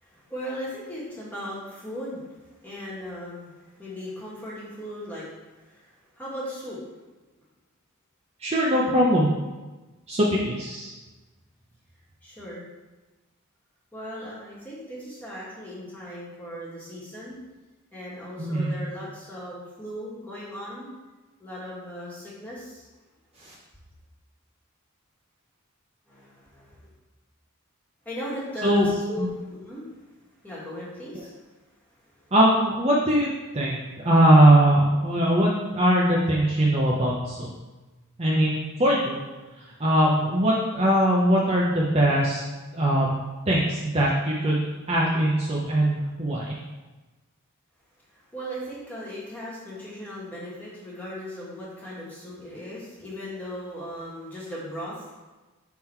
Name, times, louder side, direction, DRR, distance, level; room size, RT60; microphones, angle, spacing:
voice 1, 0.0-2.2 2.6-5.3 5.7-5.9 6.2-6.8 12.2-12.7 13.9-17.4 17.9-20.9 21.4-22.8 26.1-26.8 28.0-29.9 30.4-31.3 48.1-55.0, equal, 10° left, -7 dB, 1.7 m, -37 dB
voice 2, 8.4-9.3 10.1-10.9 18.4-18.7 23.4-23.5 28.6-28.9 29.2-29.3 32.3-33.3 33.5-33.8 34.0-37.5 38.2-39.2 39.8-42.4 42.7-43.2 43.5-46.5, right 1 dB, 25° right, -4 dB, 0.7 m, -21 dB
6.1 x 3.7 x 4.5 m, 1.2 s
head